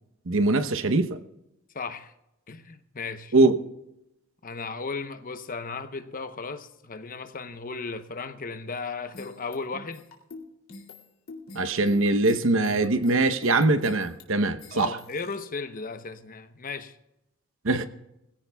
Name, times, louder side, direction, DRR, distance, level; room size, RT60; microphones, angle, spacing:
voice 1, 0.3-1.1 3.3-3.6 11.5-15.0 17.6-17.9, right 2 dB, 65° right, 0.9 m, -22 dB
voice 2, 1.7-2.1 2.5-3.3 4.4-10.1 14.7-17.0, left 4 dB, 45° left, 0.9 m, -35 dB
sound 1, 9.1-15.4, left 2 dB, 85° left, 2.5 m, -45 dB
21.5 x 16.0 x 2.3 m
head